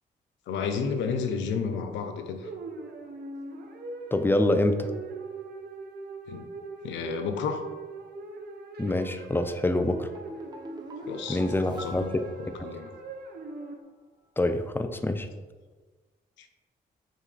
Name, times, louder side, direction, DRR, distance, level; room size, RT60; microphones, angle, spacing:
voice 1, 0.5-2.5 6.3-6.5 6.8-7.6 11.1-12.1 12.4-12.9 16.4-16.5, left 5 dB, 80° left, 6 dB, 0.5 m, -32 dB
sound 1, 2.4-13.8, right 3 dB, 60° right, 0.6 m, -41 dB
voice 2, 4.1-4.9 8.8-10.1 11.3-12.2 14.4-15.3, left 1 dB, 10° left, 7 dB, 0.4 m, -26 dB
sound 2, 9.8-13.2 13.5-13.6, equal, 20° right, 0.7 m, -43 dB
6.1 x 2.3 x 2.4 m, 1.3 s
supercardioid pair, 50°, 19 cm